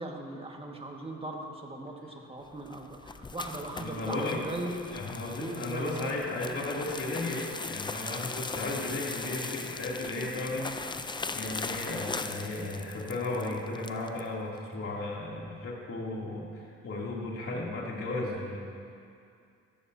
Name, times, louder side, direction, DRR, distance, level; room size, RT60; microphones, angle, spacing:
voice 1, 0.0-4.8 5.4-6.1, right 2 dB, 20° right, 1 dB, 1.7 m, -39 dB
sound 1, 2.5-14.3, left 4 dB, 15° left, 0.4 m, -39 dB
voice 2, 3.8-4.4 4.8-18.6, left 2 dB, 50° left, -4 dB, 2.9 m, -35 dB
14.5 x 14.5 x 2.8 m, 2.4 s
cardioid pair, 90°, 30 cm